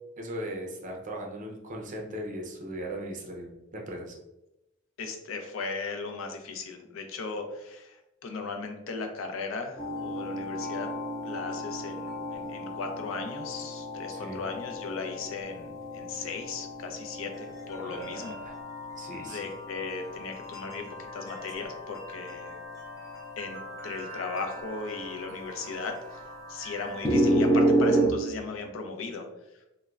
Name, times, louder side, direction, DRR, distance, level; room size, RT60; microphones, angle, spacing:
voice 1, 0.2-4.2 14.1-14.4 17.8-18.6 19.0-19.5, right 1 dB, 40° right, 1 dB, 0.5 m, -38 dB
voice 2, 5.0-10.9 11.2-18.4 19.2-22.6 23.4-23.6 23.8-26.2 26.5-29.3, left 4 dB, 75° left, 4 dB, 0.4 m, -37 dB
sound 1, 9.8-28.1, right 1 dB, 15° left, 0.4 m, -32 dB
3.1 x 2.1 x 2.3 m, 0.92 s
head